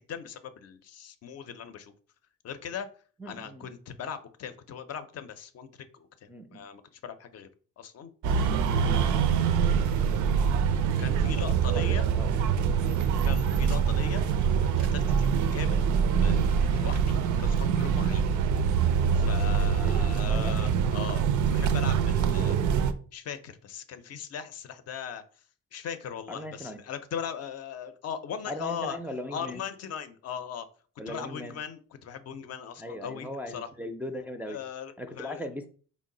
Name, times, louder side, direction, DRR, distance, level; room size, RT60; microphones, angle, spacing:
voice 1, 0.0-1.9 2.4-2.9 3.3-5.7 5.9-7.5 7.8-10.1 11.0-12.1 13.2-14.4 14.8-15.9 16.2-18.2 19.1-21.2 21.5-22.6 23.1-25.2 25.7-29.0 29.3-30.7 31.1-33.7 34.5-35.4, left 8 dB, 55° left, 10 dB, 0.5 m, -39 dB
voice 2, 3.2-3.7 6.3-6.6 11.7-12.4 12.8-13.1 15.0-15.2 16.7-16.9 19.8-20.6 26.3-26.8 28.5-29.6 31.0-31.6 32.8-34.6 35.0-35.7, left 1 dB, 5° right, 4 dB, 0.4 m, -39 dB
sound 1, 8.2-22.9, right 7 dB, 75° right, 0.5 m, -25 dB
3.8 x 2.1 x 3.7 m, 0.41 s
cardioid pair, 90°, 30 cm